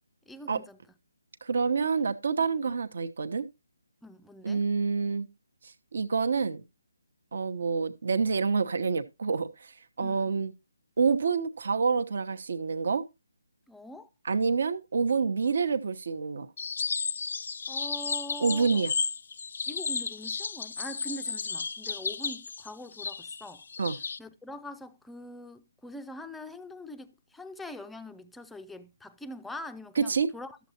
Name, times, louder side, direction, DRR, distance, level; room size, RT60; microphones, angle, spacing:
voice 1, 0.3-0.8 4.0-4.6 10.0-10.3 13.7-14.1 17.7-18.8 19.7-23.6 24.2-30.6, left 1 dB, 5° left, 0.5 m, -43 dB
voice 2, 1.4-3.5 4.4-5.3 5.9-6.6 7.3-9.7 10.0-10.5 11.0-13.0 14.2-16.5 18.4-18.9 23.8-24.0 30.0-30.3, right 5 dB, 60° right, 1.0 m, -27 dB
sound 1, 16.6-24.2, left 5 dB, 60° left, 0.4 m, -33 dB
12.5 x 7.2 x 2.9 m
hypercardioid pair, 160°, 0 cm